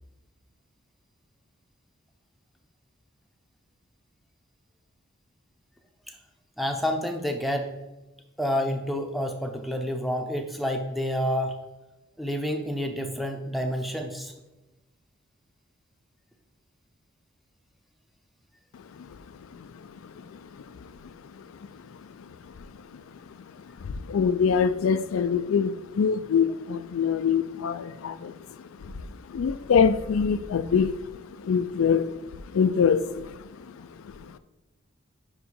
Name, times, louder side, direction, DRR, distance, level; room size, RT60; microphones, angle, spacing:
voice 1, 6.6-7.7 8.4-11.5 12.2-14.3, equal, ahead, 3 dB, 0.6 m, -29 dB
voice 2, 19.5-21.4 22.2-22.5 22.9-23.0 23.8-31.0 31.4-34.4, left 6 dB, 75° left, 12 dB, 0.4 m, -26 dB
5.4 x 4.8 x 5.4 m, 1.1 s
head